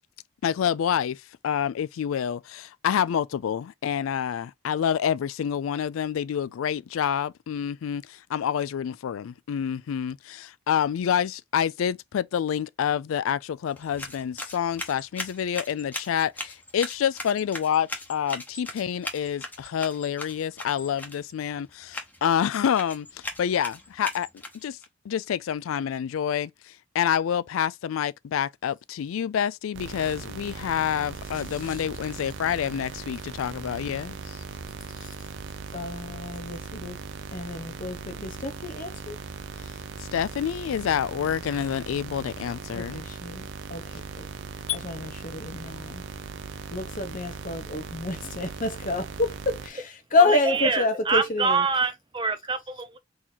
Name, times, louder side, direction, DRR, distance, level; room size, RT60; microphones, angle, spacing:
voice 1, 0.4-24.3 24.5-24.8 25.1-34.4 40.0-43.0 44.7-44.8, left 8 dB, 90° left, 0.3 m, -28 dB
sound 1, 13.7-24.8, left 2 dB, 10° left, 1.0 m, -39 dB
sound 2, 29.7-49.7, right 4 dB, 65° right, 0.6 m, -39 dB
voice 2, 35.7-37.0 37.3-39.2 42.7-44.3 44.7-46.0 46.7-51.6, left 2 dB, 40° left, 1.0 m, -28 dB
voice 3, 50.2-53.0, right 4 dB, 25° right, 0.6 m, -26 dB
3.9 x 2.9 x 3.9 m
head